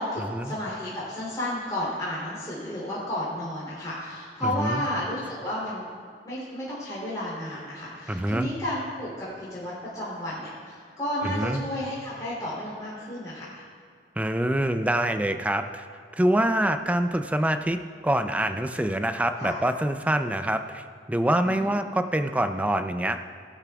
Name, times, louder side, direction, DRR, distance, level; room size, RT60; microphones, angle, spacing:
voice 1, 0.0-5.8 6.2-13.6 19.4-19.6 21.4-21.7, left 1 dB, 20° left, -9 dB, 3.0 m, -32 dB
voice 2, 4.4-4.8 8.1-8.5 11.2-11.7 14.2-15.9 16.2-17.8 18.0-23.2, right 1 dB, 10° right, 8 dB, 0.4 m, -25 dB
17.0 x 12.0 x 2.3 m, 2.2 s
head